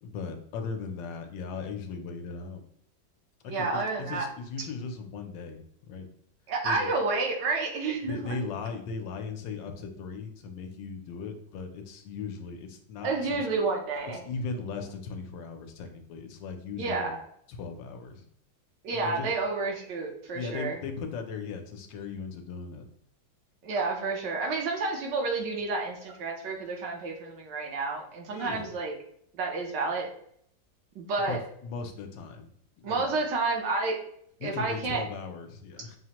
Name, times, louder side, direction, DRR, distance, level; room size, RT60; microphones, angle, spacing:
voice 1, 0.0-2.6 3.4-6.1 6.6-6.9 8.0-13.5 14.1-17.1 17.5-18.3 18.9-19.3 20.3-22.8 28.3-28.7 31.3-32.5 32.8-33.2 34.4-36.0, left 4 dB, 80° left, 4 dB, 1.3 m, -38 dB
voice 2, 3.5-4.3 6.5-8.3 13.0-14.2 16.8-17.2 18.8-20.8 23.6-28.9 29.3-30.1 31.0-31.4 32.8-34.0 34.4-35.0, right 3 dB, 70° right, 1 dB, 1.4 m, -30 dB
6.1 x 2.1 x 2.9 m, 0.67 s
omnidirectional pair, 2.0 m